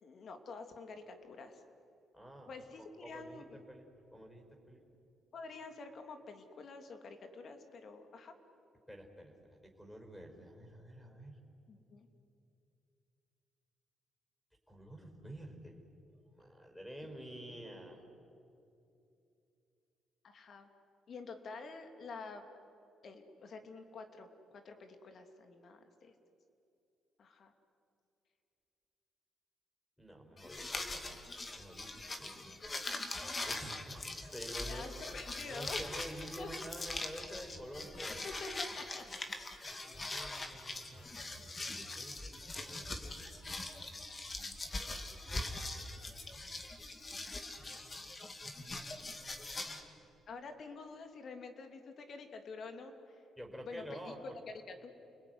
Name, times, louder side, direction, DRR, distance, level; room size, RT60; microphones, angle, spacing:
voice 1, 0.0-1.6 2.5-3.6 5.3-8.3 11.7-12.1 20.2-20.7 21.1-22.5 23.0-26.1 27.2-27.5 32.6-32.7 34.7-35.8 36.4-36.5 38.2-39.1 50.3-53.2 53.6-54.1 54.7-54.9, left 4 dB, 55° left, 6 dB, 2.9 m, -48 dB
voice 2, 2.1-3.9 4.1-4.8 8.9-11.4 14.7-15.8 16.3-18.1 30.0-31.2 31.5-35.0 35.5-38.4 39.7-41.1 41.4-43.1 45.9-46.0 46.3-46.5 49.7-49.9 53.4-54.4, equal, 5° left, 4 dB, 5.5 m, -50 dB
sound 1, 30.4-49.8, left 2 dB, 30° left, 2.7 m, -42 dB
30.0 x 20.5 x 9.8 m, 2.7 s
cardioid pair, 90°, 0 cm